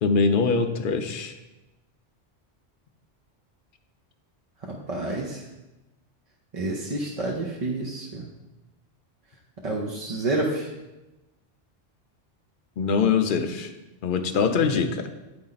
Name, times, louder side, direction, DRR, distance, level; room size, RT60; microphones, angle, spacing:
voice 1, 0.0-1.4 12.8-13.7 14.0-15.1, left 5 dB, 55° left, 7 dB, 0.6 m, -23 dB
voice 2, 4.6-5.4 6.5-8.3 9.6-10.7, right 2 dB, 40° right, -1 dB, 0.6 m, -29 dB
9.5 x 4.3 x 3.9 m, 1.0 s
omnidirectional pair, 1.3 m